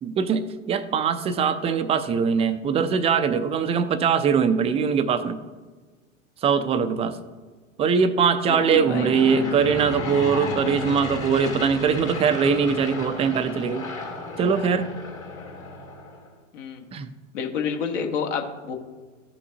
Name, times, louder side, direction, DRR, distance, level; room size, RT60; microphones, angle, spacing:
voice 1, 0.0-5.4 6.4-7.2 7.8-13.9 14.4-14.9 16.9-17.1, right 6 dB, 15° right, 11 dB, 0.4 m, -22 dB
Aircraft / Engine, 8.3-16.3, left 2 dB, 90° left, 2.7 m, -33 dB
voice 2, 8.5-9.2 16.5-16.8 17.3-18.7, left 6 dB, 65° left, 3 dB, 1.3 m, -29 dB
14.0 x 5.7 x 2.7 m, 1.4 s
hypercardioid pair, 90°, 40 cm